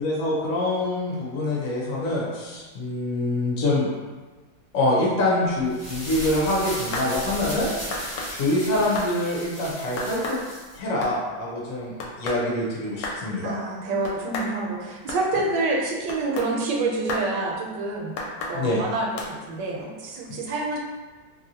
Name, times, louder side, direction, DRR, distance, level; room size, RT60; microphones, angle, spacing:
voice 1, 0.0-3.9 4.7-7.7 8.3-10.4 10.7-11.9 12.2-13.6 18.5-18.8, left 1 dB, 60° left, -4 dB, 0.9 m, -25 dB
sound 1, 5.6-10.8, equal, 20° left, 0.4 m, -36 dB
sound 2, 6.7-7.1 7.9-8.3 9.0-9.1 10.0-10.4 10.8-11.2 12.0-12.4 13.0-13.2 14.0-14.5 15.1-15.2 16.1-16.5 17.1-17.3 18.2-18.6 19.2-19.3, left 2 dB, 75° left, 1.2 m, -31 dB
voice 2, 13.4-18.1 18.4-20.8, right 2 dB, 75° right, -1 dB, 1.1 m, -27 dB
2.9 x 2.6 x 2.7 m, 1.3 s
omnidirectional pair, 2.1 m